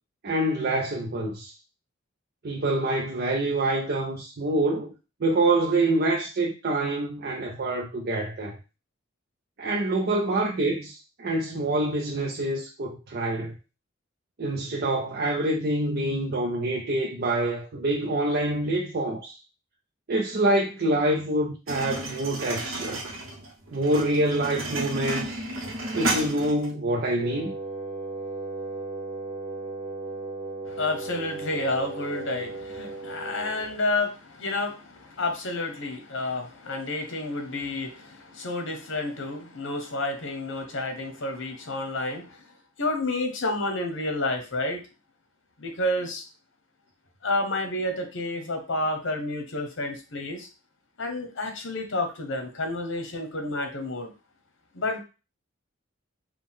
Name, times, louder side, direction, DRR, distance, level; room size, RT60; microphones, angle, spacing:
voice 1, 0.2-1.5 2.4-4.9 5.2-8.6 9.6-13.5 14.4-19.4 20.1-23.0 23.7-25.4 25.9-27.5, right 1 dB, 50° right, 0.6 m, -26 dB
sound 1, 21.7-26.7, right 2 dB, 85° right, 1.0 m, -32 dB
Wind instrument woodwind instrument, 27.2-33.8, right 3 dB, 20° right, 1.2 m, -36 dB
voice 2, 30.7-42.4 42.8-44.8 45.6-46.2 47.2-50.5 51.0-54.1 54.7-55.0, left 2 dB, 65° left, 1.1 m, -30 dB
5.1 x 2.3 x 3.6 m
head